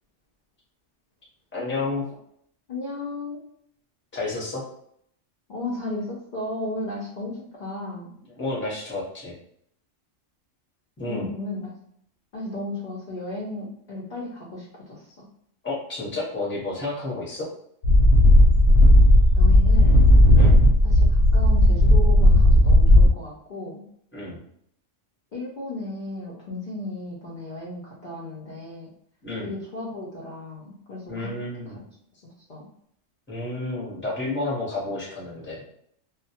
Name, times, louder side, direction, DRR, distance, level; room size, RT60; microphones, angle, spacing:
voice 1, 1.5-2.0 4.1-4.6 8.2-9.3 11.0-11.3 15.6-17.5 20.3-20.6 24.1-24.4 29.2-29.5 31.1-31.8 33.3-35.7, left 2 dB, 10° left, -6 dB, 0.6 m, -31 dB
voice 2, 2.7-3.4 5.5-8.1 11.1-11.7 12.3-15.3 19.3-20.0 20.8-23.8 25.3-28.9 29.4-31.3 32.5-32.7, left 2 dB, 55° left, -4 dB, 0.5 m, -34 dB
sound 1, 17.8-23.1, left 1 dB, 85° left, 0.9 m, -14 dB
2.2 x 2.1 x 2.7 m, 0.70 s
omnidirectional pair, 1.3 m